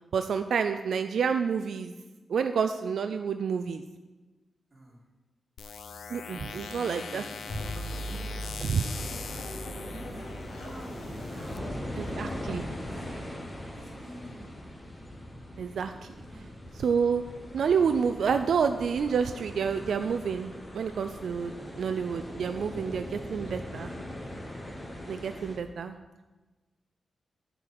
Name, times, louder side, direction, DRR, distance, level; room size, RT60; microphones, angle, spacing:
voice 1, 0.1-1.9 2.3-3.8 6.1-7.2 8.6-8.9 12.0-12.6 15.6-16.1 16.8-17.2 17.5-23.9 25.1-25.9, right 6 dB, 85° right, 8 dB, 0.4 m, -29 dB
voice 2, 4.7-5.0 6.2-7.6 8.0-9.1 9.8-13.2 13.7-14.6 16.2-16.5 21.4-21.9, right 1 dB, 30° right, -5 dB, 3.1 m, -48 dB
sound 1, 5.6-11.6, left 6 dB, 80° left, 0.5 m, -42 dB
sound 2, 7.5-13.0, equal, 65° left, 1.5 m, -40 dB
sound 3, 8.9-25.6, left 1 dB, 15° left, 1.2 m, -41 dB
10.0 x 4.6 x 7.6 m, 1.2 s
wide cardioid pair, 170°, 0 cm